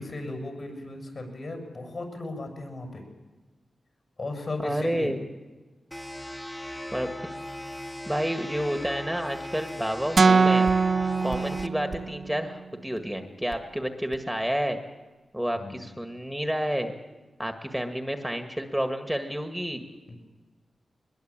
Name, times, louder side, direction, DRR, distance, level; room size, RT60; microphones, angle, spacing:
voice 1, 0.0-3.0 4.2-5.1 15.5-15.9, left 2 dB, 50° left, 4 dB, 7.2 m, -36 dB
voice 2, 4.6-5.2 6.9-7.1 8.1-10.7 11.2-14.8 15.3-16.9 17.4-19.8, equal, 5° right, 6 dB, 1.8 m, -30 dB
sound 1, 5.9-11.7, left 1 dB, 10° left, 1.6 m, -38 dB
sound 2, 8.8-8.9 9.3-9.4 9.7-9.8 10.6-12.2 12.9-13.1 13.5-13.7 14.1-14.2, right 4 dB, 75° right, 1.8 m, -43 dB
sound 3, 10.2-12.3, right 4 dB, 60° right, 0.8 m, -22 dB
22.5 x 21.5 x 8.9 m, 1.2 s
wide cardioid pair, 80°, 0 cm